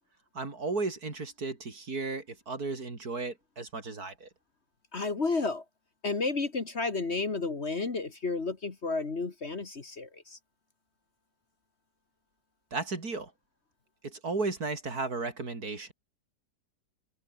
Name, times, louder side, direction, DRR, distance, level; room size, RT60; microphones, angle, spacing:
voice 1, 0.3-4.3 12.7-13.3 14.0-15.9, right 3 dB, 60° right, 4.0 m, -34 dB
voice 2, 4.9-5.6 6.0-10.4, left 3 dB, 40° left, 2.0 m, -32 dB
omnidirectional pair, 1.8 m